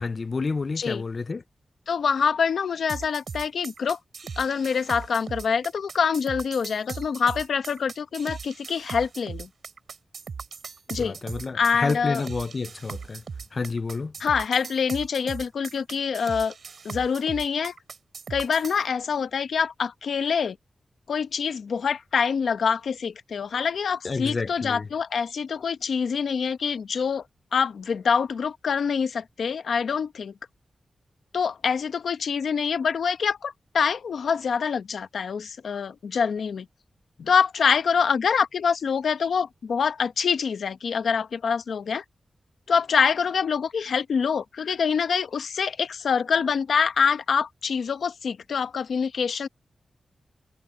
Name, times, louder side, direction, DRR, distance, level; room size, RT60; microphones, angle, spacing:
voice 1, 0.0-1.4 11.0-13.2 13.5-14.1 24.0-24.9, left 4 dB, 40° left, 0.5 m, -29 dB
voice 2, 1.9-4.0 4.4-9.5 10.9-11.2 11.5-12.2 14.2-16.5 16.8-17.8 18.3-20.6 21.1-27.2 27.5-30.3 31.3-36.7 37.2-42.0 42.7-49.5, left 6 dB, 85° left, 1.1 m, -25 dB
sound 1, 2.9-18.8, right 5 dB, 65° right, 2.9 m, -38 dB
wide cardioid pair, 140°, 0 cm